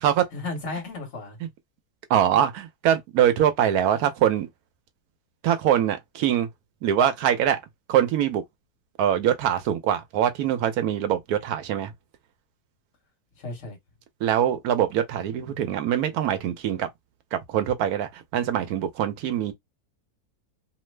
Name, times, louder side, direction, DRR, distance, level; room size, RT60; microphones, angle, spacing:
voice 1, 0.3-1.4 13.3-13.8, left 3 dB, 50° left, 1.4 m, -34 dB
voice 2, 2.1-4.5 5.4-6.5 6.8-7.6 7.9-8.4 9.0-11.9 14.2-16.9 17.3-19.5, right 10 dB, 75° right, 1.1 m, -23 dB
3.1 x 2.0 x 3.2 m
omnidirectional pair, 1.7 m